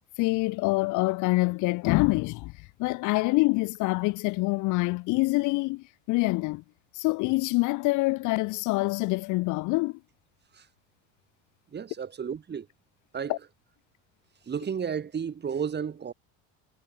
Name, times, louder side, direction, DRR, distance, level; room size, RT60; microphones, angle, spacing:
voice 1, 0.2-6.6 6.9-10.0 13.3-13.4, left 23 dB, 60° left, 0.7 m, -26 dB
voice 2, 11.7-12.7 13.1-13.4 14.4-16.1, right 7 dB, 30° right, 4.2 m, -32 dB
supercardioid pair, 110°, 34 cm